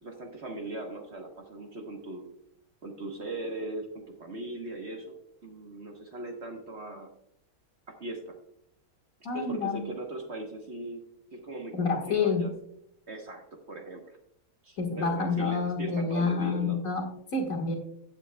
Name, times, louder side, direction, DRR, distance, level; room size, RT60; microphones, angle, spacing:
voice 1, 0.0-2.3 2.8-5.1 5.4-7.1 7.9-8.4 9.3-11.0 11.3-12.5 13.1-14.2 14.6-16.8, right 2 dB, 45° right, 2 dB, 1.3 m, -39 dB
voice 2, 9.3-9.8 11.7-12.5 14.8-17.7, left 4 dB, 55° left, 1 dB, 1.9 m, -28 dB
15.0 x 8.5 x 2.2 m, 0.73 s
omnidirectional pair, 1.8 m